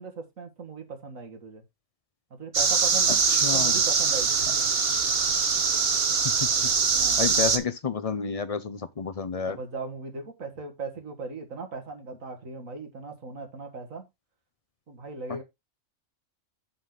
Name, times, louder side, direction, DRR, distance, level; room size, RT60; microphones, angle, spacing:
voice 1, 0.0-1.6 2.4-3.2 3.5-4.7 6.9-7.3 9.5-14.1 14.9-15.4, right 4 dB, 80° right, 2.1 m, -38 dB
sound 1, 2.5-7.6, right 5 dB, 50° right, 1.2 m, -23 dB
voice 2, 3.3-3.8 6.2-6.7 7.2-9.6, left 5 dB, 40° left, 0.5 m, -30 dB
7.5 x 6.5 x 3.7 m
omnidirectional pair, 1.4 m